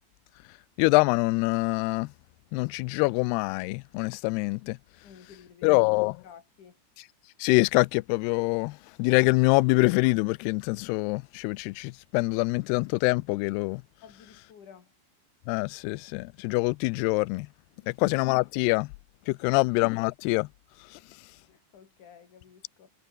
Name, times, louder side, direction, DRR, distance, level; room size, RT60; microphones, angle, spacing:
voice 1, 0.8-2.1 2.5-4.8 5.6-6.2 7.4-13.8 15.5-17.5 17.9-18.9 19.3-20.5, left 25 dB, 85° left, 2.3 m, -25 dB
voice 2, 5.0-5.8 6.2-6.8 14.0-14.9 17.8-18.0 19.4-19.5 21.5-22.9, left 7 dB, 45° left, 4.3 m, -52 dB
omnidirectional pair, 5.1 m